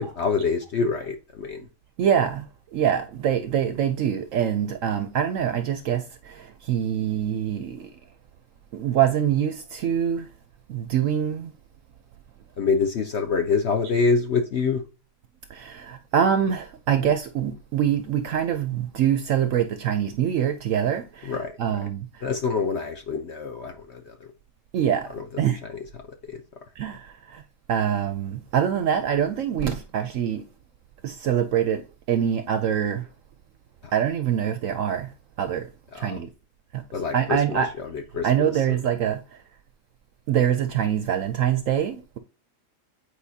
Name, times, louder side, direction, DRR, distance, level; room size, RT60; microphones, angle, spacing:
voice 1, 0.0-1.6 12.6-14.8 21.2-21.5 22.2-24.2 25.1-25.2 25.7-25.8 26.3-26.4 35.9-36.2 36.9-37.6 37.9-38.8, left 4 dB, 55° left, 0.8 m, -26 dB
voice 2, 2.0-2.4 2.7-7.9 8.7-10.3 10.7-11.5 15.5-22.2 24.7-25.1 25.4-25.6 26.8-27.4 27.7-30.5 31.0-33.1 33.9-35.1 35.4-35.7 35.9-36.3 36.7-36.8 37.1-37.7 38.2-39.2 40.3-42.2, right 9 dB, 65° right, 0.8 m, -24 dB
8.5 x 4.6 x 2.7 m
omnidirectional pair, 1.7 m